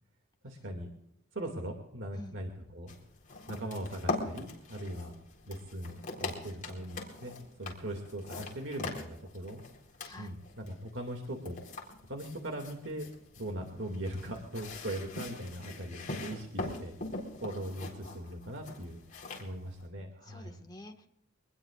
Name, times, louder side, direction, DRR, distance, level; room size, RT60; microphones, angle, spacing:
voice 1, 0.4-0.9 1.3-3.0 3.5-5.2 5.5-9.6 10.2-11.6 12.1-13.1 13.4-16.9 17.4-19.0 19.4-20.6, right 1 dB, 65° right, 2 dB, 2.3 m, -40 dB
sound 1, 2.9-19.9, left 2 dB, 40° left, 3.9 m, -42 dB
voice 2, 10.0-10.3 20.2-21.1, left 1 dB, 20° left, 4 dB, 1.6 m, -49 dB
24.0 x 20.0 x 2.5 m, 0.80 s
head